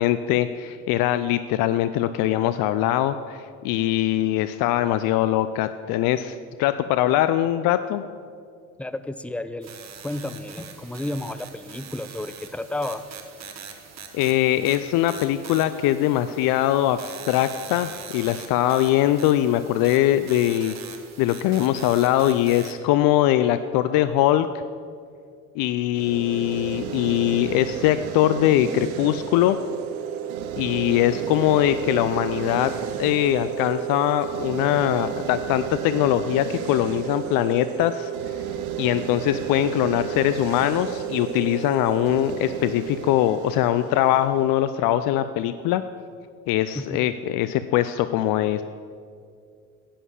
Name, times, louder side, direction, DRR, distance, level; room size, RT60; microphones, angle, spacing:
voice 1, 0.0-8.0 14.1-20.7 21.2-24.5 25.6-29.6 30.6-32.7 33.0-38.1 38.8-45.8 46.5-48.6, left 13 dB, 55° left, 11 dB, 0.6 m, -22 dB
voice 2, 8.8-9.7 10.0-13.0 46.7-47.0, left 1 dB, 5° left, 12 dB, 0.5 m, -32 dB
sound 1, 9.6-22.7, right 7 dB, 40° right, 1.4 m, -42 dB
sound 2, 25.9-45.0, right 10 dB, 75° right, 1.0 m, -32 dB
11.0 x 8.6 x 7.2 m, 2.2 s
hypercardioid pair, 65°, 43 cm